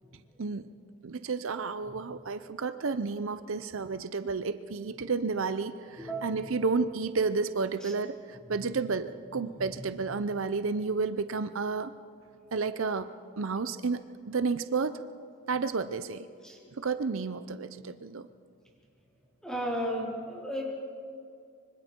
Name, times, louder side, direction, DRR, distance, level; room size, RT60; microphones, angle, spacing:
voice 1, 0.4-0.7 1.0-11.9 12.5-14.0 14.3-15.0 15.5-16.3 16.8-18.3, right 4 dB, 70° right, 12 dB, 0.6 m, -31 dB
voice 2, 6.0-6.4 7.8-7.9 16.4-16.7 19.4-20.7, equal, 5° left, -3 dB, 3.9 m, -34 dB
25.0 x 25.0 x 4.5 m, 2.3 s
head